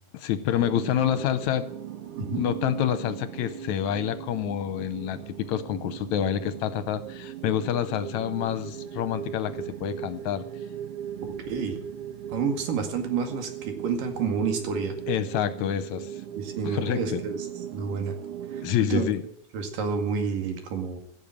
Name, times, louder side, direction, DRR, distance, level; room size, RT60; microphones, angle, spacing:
voice 1, 0.1-1.7 2.4-10.4 15.1-16.2 16.7-17.2 18.6-19.2, left 10 dB, 75° left, 13 dB, 1.9 m, -27 dB
sound 1, 0.6-18.8, right 9 dB, 65° right, 1.6 m, -38 dB
voice 2, 11.5-11.8 12.3-15.0 16.4-17.5 17.7-18.2 18.5-19.1 19.5-21.0, right 5 dB, 85° right, 5 dB, 3.7 m, -29 dB
16.0 x 7.1 x 8.8 m, 0.65 s
omnidirectional pair, 3.7 m